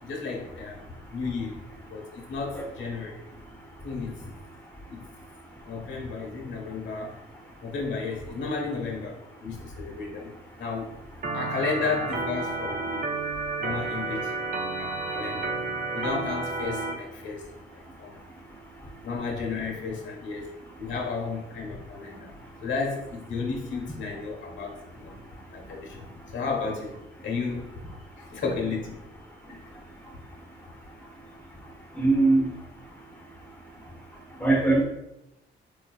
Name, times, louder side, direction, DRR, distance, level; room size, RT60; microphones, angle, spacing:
voice 1, 0.0-3.2 3.8-4.3 4.9-5.0 5.6-7.1 7.6-10.3 10.6-10.9 11.3-13.1 13.6-14.3 14.8-15.6 15.9-18.2 19.0-20.5 20.8-22.3 22.6-25.2 25.5-26.9 27.2-29.0 29.5-29.6, left 4 dB, 70° left, 0 dB, 1.1 m, -33 dB
Organ, 11.2-16.9, right 3 dB, 45° right, 0.6 m, -31 dB
voice 2, 31.9-32.5 34.4-34.8, right 2 dB, 10° left, -1 dB, 0.8 m, -21 dB
3.7 x 2.6 x 2.3 m, 0.89 s
cardioid pair, 90°, 20 cm